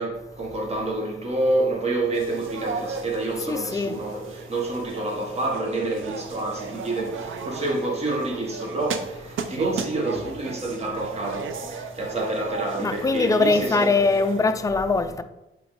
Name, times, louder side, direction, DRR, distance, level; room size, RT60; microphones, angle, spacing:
voice 1, 0.0-14.4 14.9-15.1, right 2 dB, 30° right, 1.3 m, -28 dB
sound 1, 2.1-14.4, right 5 dB, 75° right, 0.6 m, -35 dB
voice 2, 3.5-4.0 12.8-15.2, left 3 dB, 15° left, 0.3 m, -22 dB
8.3 x 3.4 x 3.9 m
wide cardioid pair, 140°, 21 cm